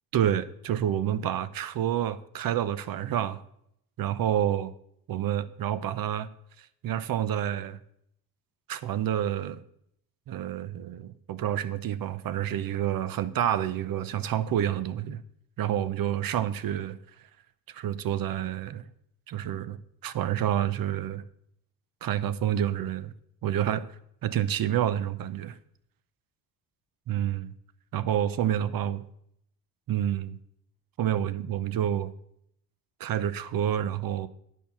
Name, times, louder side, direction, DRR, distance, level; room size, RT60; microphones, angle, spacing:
voice 1, 0.1-3.4 4.0-4.7 5.1-6.3 6.6-7.8 8.7-9.6 10.3-15.2 15.6-17.0 17.7-18.9 19.3-21.2 22.0-23.1 23.4-23.8 24.2-25.6 27.1-27.5 27.9-29.0 29.9-30.4 31.0-32.1 33.0-34.3, right 10 dB, 55° right, 15 dB, 0.8 m, -28 dB
10.0 x 4.6 x 7.0 m, 0.72 s
supercardioid pair, 75°, 40 cm